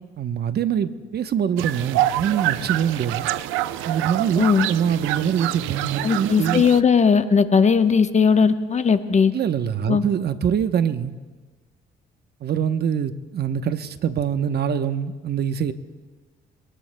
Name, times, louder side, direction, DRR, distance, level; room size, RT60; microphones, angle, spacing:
voice 1, 0.2-3.3 3.9-6.6 9.3-11.1 12.4-15.7, right 8 dB, 55° right, 0.9 m, -24 dB
sound 1, 1.6-6.8, right 14 dB, 85° right, 0.5 m, -26 dB
voice 2, 4.4-4.7 6.0-9.3 9.9-10.0, left 6 dB, 35° left, 1.0 m, -18 dB
25.5 x 19.0 x 2.2 m
supercardioid pair, 65°, 20 cm